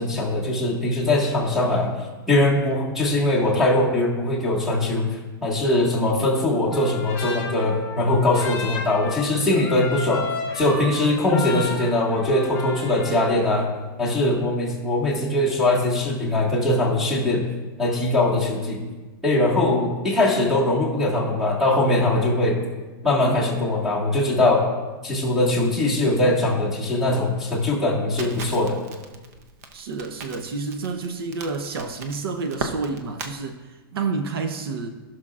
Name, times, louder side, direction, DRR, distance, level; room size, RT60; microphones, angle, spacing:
voice 1, 0.0-1.9 2.3-10.2 10.5-13.7 14.0-17.4 17.8-18.8 19.2-22.6 23.0-24.7 25.0-28.8, left 2 dB, ahead, -5 dB, 1.7 m, -21 dB
Trumpet, 6.7-13.4, left 3 dB, 20° left, 2.7 m, -33 dB
Crackle, 28.2-33.3, right 4 dB, 45° right, 0.7 m, -37 dB
voice 2, 29.7-34.9, right 4 dB, 75° right, 6 dB, 0.8 m, -29 dB
18.5 x 6.3 x 2.4 m, 1.2 s
supercardioid pair, 170°, 13 cm